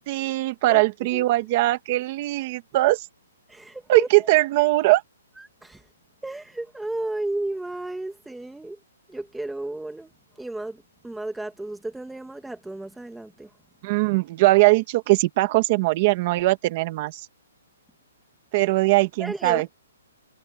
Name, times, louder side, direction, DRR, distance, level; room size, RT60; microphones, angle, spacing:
voice 1, 0.1-3.0 3.9-5.0 13.8-17.2 18.5-19.6, right 20 dB, 25° right, 1.7 m, -20 dB
voice 2, 0.7-1.3 3.5-4.3 5.4-5.8 6.2-8.8 9.1-10.1 10.4-13.5 19.2-19.6, right 2 dB, ahead, 2.2 m, -33 dB
hypercardioid pair, 175°, 0 cm